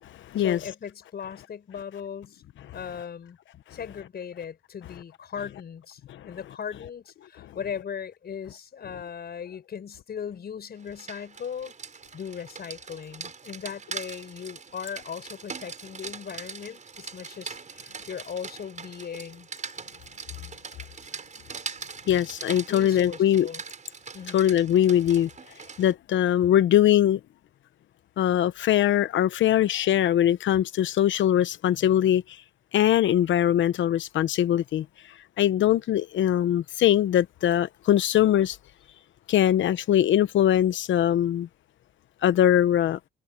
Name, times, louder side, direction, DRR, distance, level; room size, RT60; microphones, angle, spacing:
voice 1, 0.4-2.4 2.7-3.4 3.7-11.7 12.1-19.5 22.7-23.6 24.1-24.4, left 7 dB, 55° left, 6.2 m, -38 dB
Rain, 10.8-25.9, right 5 dB, 40° right, 5.7 m, -41 dB
voice 2, 22.1-23.5 24.3-25.3 25.8-27.2 28.2-32.2 32.7-34.8 35.4-38.6 39.3-41.5 42.2-43.0, left 11 dB, 75° left, 1.0 m, -21 dB
cardioid pair, 90°, 20 cm